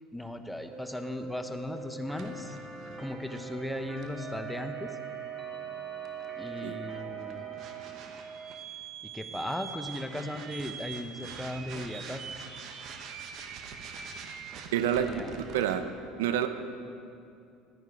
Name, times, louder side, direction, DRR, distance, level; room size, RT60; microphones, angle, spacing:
voice 1, 0.1-2.6 2.9-5.0 6.4-7.5 9.0-12.5 15.0-15.3, left 1 dB, 5° left, 7 dB, 0.9 m, -37 dB
sound 1, 0.7-15.8, right 7 dB, 55° right, 1.1 m, -42 dB
Organ, 2.1-7.8, right 1 dB, 25° right, 2.8 m, -48 dB
voice 2, 14.7-15.8 16.2-16.5, right 10 dB, 75° right, 9 dB, 0.6 m, -28 dB
12.5 x 9.3 x 4.8 m, 2.5 s
hypercardioid pair, 70°, 0 cm